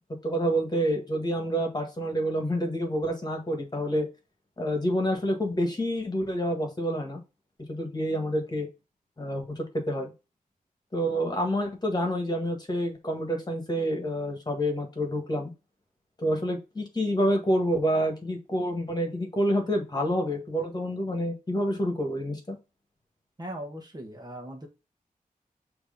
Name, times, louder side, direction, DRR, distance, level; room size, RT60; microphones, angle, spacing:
voice 1, 0.2-4.1 4.6-7.2 7.7-8.7 9.2-10.1 10.9-15.5 16.2-22.6, equal, 30° left, 2 dB, 1.7 m, -28 dB
voice 2, 23.4-24.7, right 1 dB, 25° right, 3 dB, 1.3 m, -39 dB
6.4 x 3.1 x 5.2 m, 0.28 s
wide cardioid pair, 90°, 15 cm